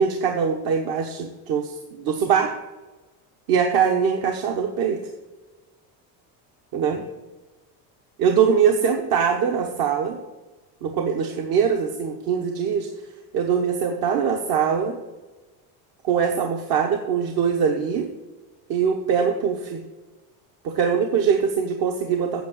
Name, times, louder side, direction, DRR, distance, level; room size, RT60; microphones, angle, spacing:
voice 1, 0.0-2.5 3.5-5.0 6.7-7.0 8.2-10.2 10.8-12.9 13.3-15.0 16.0-18.1 18.7-19.8 20.6-22.4, right 7 dB, 55° right, 4 dB, 1.2 m, -22 dB
8.6 x 7.3 x 7.8 m, 1.2 s
cardioid pair, 130°, 44 cm